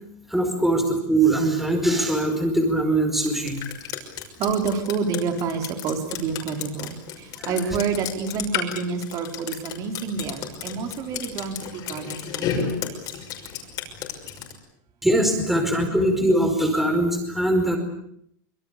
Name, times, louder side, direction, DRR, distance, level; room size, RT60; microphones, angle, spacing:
voice 1, 0.3-3.6 7.4-7.5 15.0-17.8, right 1 dB, ahead, 4 dB, 5.0 m, -21 dB
Drip, 3.2-14.5, left 8 dB, 35° left, 5.9 m, -32 dB
voice 2, 4.4-13.0, right 5 dB, 35° right, 5 dB, 4.5 m, -28 dB
25.5 x 23.5 x 8.5 m, 0.70 s
supercardioid pair, 160°, 11 cm